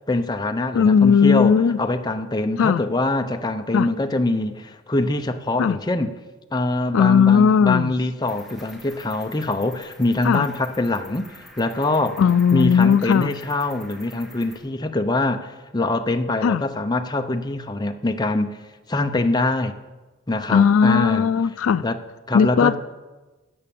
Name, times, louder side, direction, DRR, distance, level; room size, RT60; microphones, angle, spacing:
voice 1, 0.1-1.5 1.8-6.1 6.5-12.2 12.5-18.6 18.9-19.8 20.3-21.2 21.8-22.0 22.3-22.8, left 2 dB, 20° left, 6 dB, 0.7 m, -24 dB
voice 2, 0.7-1.8 2.6-2.8 3.7-3.9 5.6-5.8 6.9-7.9 10.2-10.5 12.2-13.3 16.4-16.6 20.5-21.8 22.3-22.7, left 6 dB, 75° left, 15 dB, 0.4 m, -17 dB
Cricket, 8.2-14.6, left 1 dB, ahead, 2.0 m, -47 dB
12.5 x 8.3 x 7.0 m, 1.2 s
head